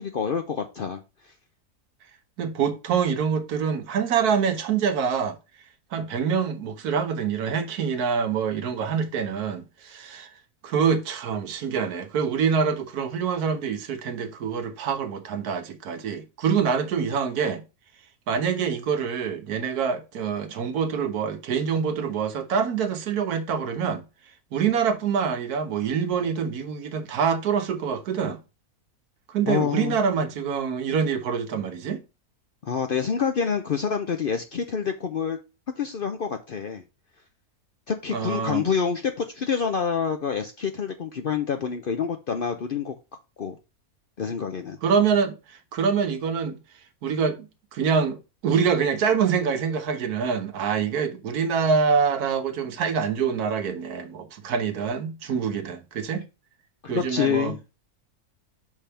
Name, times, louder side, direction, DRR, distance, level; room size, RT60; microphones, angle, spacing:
voice 1, 0.0-1.3 29.5-29.9 32.6-35.4 35.8-36.8 37.9-42.9 43.4-43.6 44.2-44.8 56.8-57.6, left 6 dB, 60° left, 0.6 m, -27 dB
voice 2, 2.4-5.4 5.9-10.3 10.6-17.6 18.3-24.0 24.5-28.4 29.3-32.0 38.1-38.7 44.8-46.6 47.0-56.3 56.9-57.6, right 6 dB, 90° right, 1.4 m, -25 dB
5.8 x 3.4 x 5.6 m
omnidirectional pair, 1.6 m